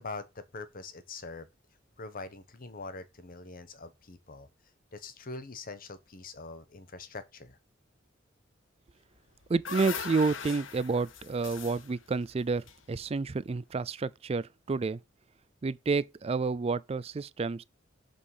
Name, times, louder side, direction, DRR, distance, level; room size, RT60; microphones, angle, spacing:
voice 1, 0.0-1.5 2.0-4.5 4.9-7.6, left 3 dB, 50° left, 1.1 m, -43 dB
sound 1, 9.2-13.4, left 6 dB, 80° left, 0.9 m, -41 dB
voice 2, 9.5-15.0 15.6-17.6, right 4 dB, 30° right, 0.4 m, -30 dB
6.5 x 5.3 x 5.5 m
head